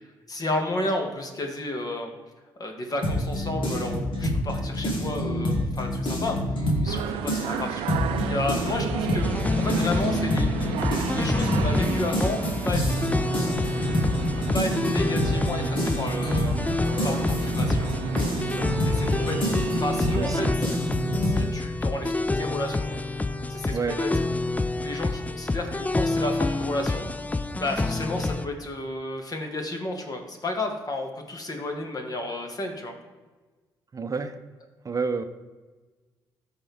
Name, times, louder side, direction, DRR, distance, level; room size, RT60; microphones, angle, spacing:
voice 1, 0.3-2.1 2.6-6.4 6.8-7.9 8.3-9.3 9.6-10.8 11.1-12.8 13.5-13.6 14.0-16.6 17.0-17.9 18.8-19.5 19.8-20.5 21.3-22.9 23.5-27.1 27.6-32.9, left 2 dB, 40° left, 2 dB, 2.0 m, -32 dB
sound 1, 3.0-7.0 7.3-21.4, equal, 65° left, 2.1 m, -27 dB
sound 2, 6.9-20.6, right 8 dB, 80° right, 0.6 m, -34 dB
voice 2, 8.2-8.7 16.9-17.2 18.6-18.9 20.1-20.8 21.1-21.5 23.7-24.0 33.9-34.4 34.8-35.2, right 5 dB, 40° right, 8 dB, 0.7 m, -32 dB
sound 3, 9.2-28.5, left 2 dB, 15° left, 0.4 m, -28 dB
13.5 x 4.5 x 3.6 m, 1.3 s
hypercardioid pair, 50°, 9 cm